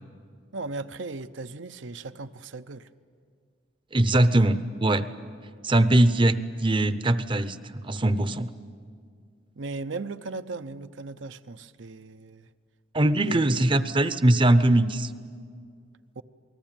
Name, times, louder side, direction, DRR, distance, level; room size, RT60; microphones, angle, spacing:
voice 1, 0.5-2.9 4.1-4.3 9.6-12.5 13.2-13.7 16.2-16.3, right 3 dB, 70° right, 11 dB, 0.7 m, -37 dB
voice 2, 3.9-5.1 5.6-7.6 7.8-8.5 12.9-15.1, right 1 dB, 25° right, 13 dB, 0.7 m, -21 dB
28.0 x 20.0 x 9.1 m, 2.1 s
head